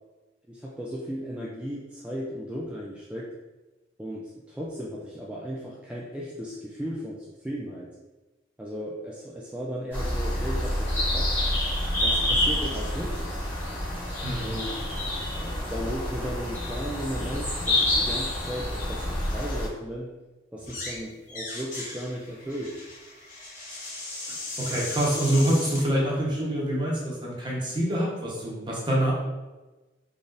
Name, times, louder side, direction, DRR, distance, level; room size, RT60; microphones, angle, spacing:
voice 1, 0.5-3.3 4.0-7.9 8.6-11.3 11.9-13.4 14.4-20.1 20.5-22.8, equal, 5° right, -5 dB, 0.3 m, -36 dB
sound 1, 9.9-19.7, left 1 dB, 10° left, 1.2 m, -28 dB
voice 2, 14.2-14.5 24.6-29.1, right 1 dB, 25° right, -4 dB, 0.9 m, -26 dB
sound 2, 20.6-21.0 21.3-25.8, left 2 dB, 45° left, 1.0 m, -37 dB
3.9 x 3.3 x 2.5 m, 1.1 s
head